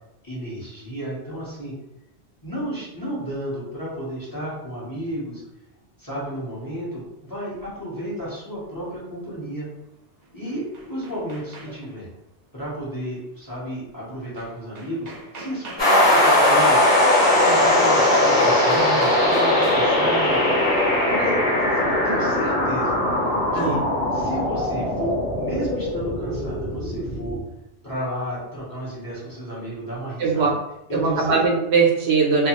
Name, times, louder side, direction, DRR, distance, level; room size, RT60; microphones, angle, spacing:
voice 1, 0.2-1.7 2.4-5.4 6.0-9.7 10.3-12.1 12.5-16.8 17.2-20.7 21.1-21.4 21.9-23.0 23.5-23.8 24.1-27.4 27.8-30.5 30.9-31.4, equal, 20° left, -7 dB, 0.7 m, -32 dB
sound 1, 10.2-12.0 14.4-14.5 14.7-20.1, right 3 dB, 50° right, 0.6 m, -37 dB
sound 2, 15.8-27.4, left 1 dB, 45° left, 1.0 m, -20 dB
voice 2, 30.2-30.5 30.9-32.5, right 4 dB, 70° right, -1 dB, 0.8 m, -20 dB
2.3 x 2.3 x 2.9 m, 0.89 s
omnidirectional pair, 1.2 m